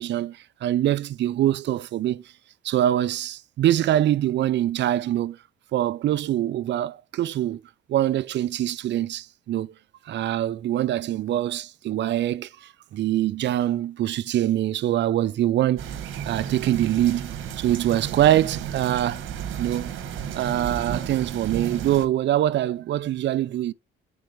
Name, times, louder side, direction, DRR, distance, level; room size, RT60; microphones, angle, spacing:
voice 1, 0.0-2.2 2.6-5.4 5.7-7.6 7.9-9.7 10.1-15.9 16.2-19.2 19.6-19.9 20.3-23.7, right 12 dB, 65° right, 0.5 m, -24 dB
sound 1, 15.8-22.1, right 8 dB, 85° right, 1.1 m, -33 dB
4.8 x 4.3 x 5.3 m
cardioid pair, 90°, 20 cm